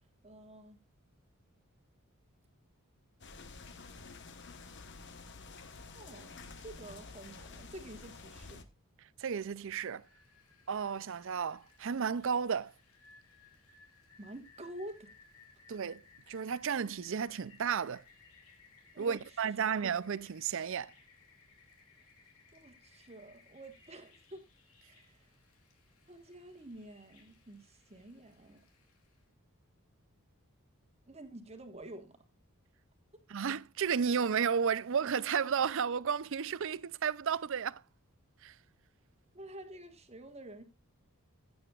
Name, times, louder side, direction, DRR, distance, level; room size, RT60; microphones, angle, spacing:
voice 1, 0.2-0.8 5.9-8.6 14.2-15.1 18.9-19.2 19.6-19.8 22.5-24.4 24.8-25.3 26.1-28.6 31.1-32.2 39.3-40.6, right 1 dB, 30° right, 1.4 m, -49 dB
sound 1, 3.2-8.6, left 4 dB, 55° left, 1.1 m, -50 dB
voice 2, 9.2-10.0 10.7-12.7 15.7-16.0 16.3-18.0 19.0-20.9 33.3-37.8 38.4-38.6, right 7 dB, 60° right, 0.5 m, -33 dB
Rain, 9.8-29.2, left 4 dB, 80° left, 2.8 m, -63 dB
15.5 x 8.7 x 2.4 m
head